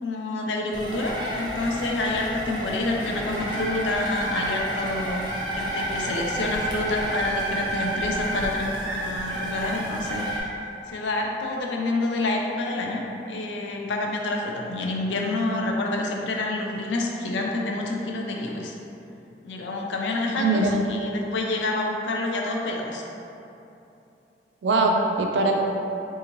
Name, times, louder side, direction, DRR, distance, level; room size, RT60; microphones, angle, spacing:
voice 1, 0.0-5.2 5.5-10.5 10.9-18.7 19.4-23.0, left 2 dB, 85° left, 0 dB, 0.5 m, -28 dB
sound 1, 0.7-10.4, right 1 dB, 25° right, 0.5 m, -30 dB
voice 2, 20.3-20.7 24.6-25.5, right 3 dB, 85° right, 1 dB, 0.4 m, -21 dB
3.6 x 2.7 x 2.9 m, 2.8 s
head